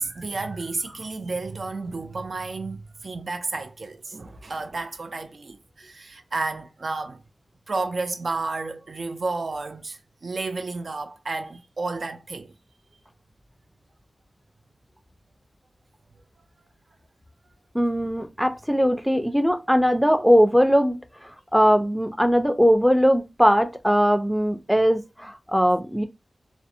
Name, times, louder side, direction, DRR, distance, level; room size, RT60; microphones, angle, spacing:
voice 1, 0.0-7.2 7.7-12.5, right 3 dB, 65° right, 0.4 m, -31 dB
voice 2, 17.7-21.0 21.5-26.0, equal, ahead, 0.4 m, -20 dB
2.5 x 2.0 x 2.6 m
wide cardioid pair, 75°, 0 cm